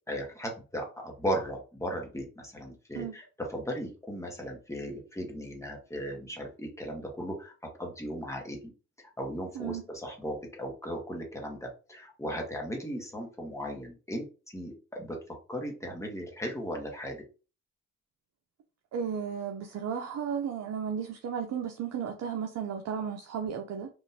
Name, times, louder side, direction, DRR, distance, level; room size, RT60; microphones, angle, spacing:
voice 1, 0.1-7.5 7.8-8.7 9.2-15.2 15.5-17.2, equal, 10° left, 1.1 m, -36 dB
voice 2, 18.9-23.9, right 7 dB, 60° right, 0.6 m, -34 dB
3.7 x 2.5 x 2.7 m
cardioid pair, 90°, 30 cm